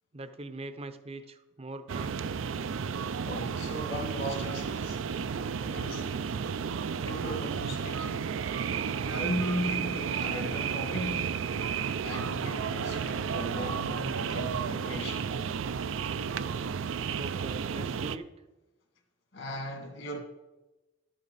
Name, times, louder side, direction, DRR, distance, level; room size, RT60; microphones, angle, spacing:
voice 1, 0.1-2.4 17.2-18.3, right 2 dB, 30° right, 0.6 m, -42 dB
sound 1, 1.9-18.2, right 6 dB, 80° right, 0.4 m, -32 dB
voice 2, 3.2-5.0 5.6-6.1 7.0-8.3 9.0-11.3 12.0-15.3 19.3-20.2, equal, 65° left, 2.1 m, -37 dB
12.5 x 8.7 x 4.1 m
head